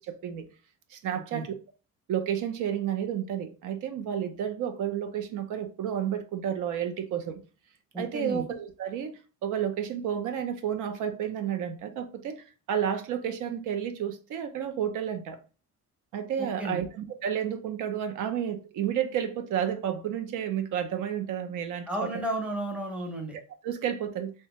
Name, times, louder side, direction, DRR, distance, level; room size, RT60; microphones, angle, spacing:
voice 1, 0.1-0.5 0.9-1.5 2.1-7.4 8.0-15.4 16.1-22.1 23.3-24.3, right 9 dB, 80° right, 0.5 m, -31 dB
voice 2, 7.9-8.4 16.4-16.8 21.9-23.4, right 1 dB, 5° right, 0.5 m, -33 dB
3.4 x 2.2 x 2.8 m
cardioid pair, 170°, 31 cm